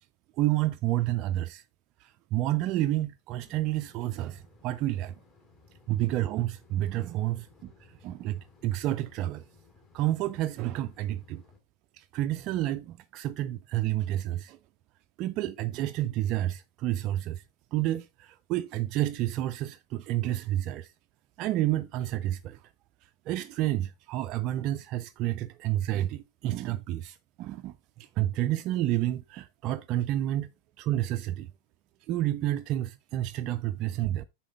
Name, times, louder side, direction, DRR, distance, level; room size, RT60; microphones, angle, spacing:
voice 1, 0.4-1.6 2.0-5.1 5.9-9.4 9.9-11.4 11.9-14.6 15.2-17.4 17.7-20.9 21.4-22.6 23.0-30.5 30.8-31.5 32.1-34.2, right 14 dB, 40° right, 0.3 m, -30 dB
sound 1, 3.4-11.6, left 4 dB, 30° left, 2.2 m, -58 dB
8.5 x 5.7 x 3.7 m
figure-of-eight pair, 90°, 0 cm